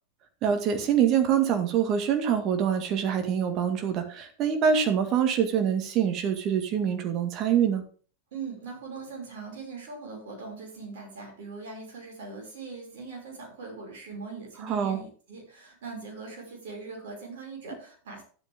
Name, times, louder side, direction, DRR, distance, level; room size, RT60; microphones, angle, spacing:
voice 1, 0.4-7.8 14.7-15.0, right 8 dB, 35° right, 6 dB, 2.0 m, -25 dB
voice 2, 8.3-18.2, right 4 dB, 55° right, 0 dB, 6.2 m, -41 dB
12.5 x 8.5 x 3.7 m, 0.40 s
figure-of-eight pair, 90°, 0 cm